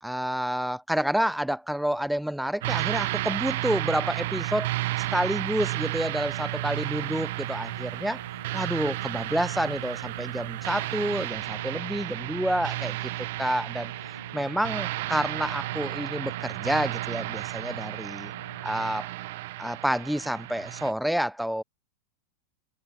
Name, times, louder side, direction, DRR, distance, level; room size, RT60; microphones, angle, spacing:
voice 1, 0.0-4.7 5.0-8.2 8.5-13.0 13.4-13.9 14.3-18.3 18.6-19.1 19.6-21.6, equal, ahead, 1.4 m, -29 dB
sound 1, 2.6-20.9, right 19 dB, 50° right, 3.9 m, -32 dB
sound 2, 4.4-18.7, right 1 dB, 85° right, 5.0 m, -48 dB
figure-of-eight pair, 90°, 0 cm